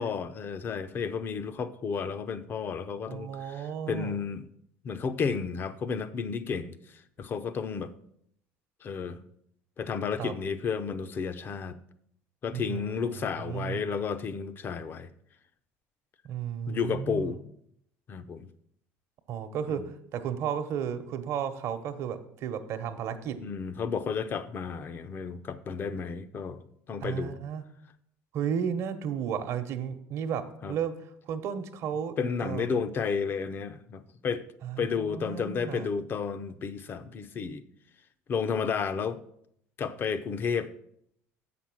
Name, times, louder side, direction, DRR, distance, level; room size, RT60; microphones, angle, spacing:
voice 1, 0.0-4.5 4.8-7.9 8.8-9.2 9.8-11.8 12.4-15.1 16.7-17.4 18.1-18.5 19.7-19.9 23.4-27.4 30.6-30.8 32.2-34.4 34.8-37.6 38.3-39.2 39.8-40.7, left 6 dB, 40° left, 0.7 m, -32 dB
voice 2, 3.1-4.2 10.2-10.3 12.5-13.8 16.2-17.3 19.3-23.4 27.0-27.6 28.3-30.9 31.2-32.1 32.4-32.8 34.6-35.9, right 8 dB, 60° right, 1.0 m, -33 dB
8.0 x 6.0 x 6.1 m
supercardioid pair, 100°, 5 cm